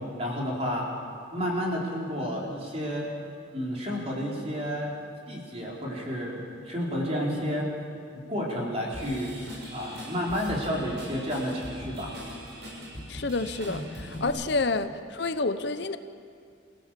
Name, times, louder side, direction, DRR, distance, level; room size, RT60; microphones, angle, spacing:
voice 1, 0.2-0.9 1.3-3.1 3.5-4.9 5.3-7.7 8.3-9.3 9.7-12.1 14.2-14.4, equal, 30° right, -3 dB, 4.1 m, -31 dB
Drum kit / Drum, 8.9-14.3, equal, 65° right, 7.2 m, -40 dB
voice 2, 13.1-16.0, left 3 dB, 60° left, 10 dB, 0.7 m, -29 dB
26.5 x 16.0 x 7.5 m, 2.3 s
head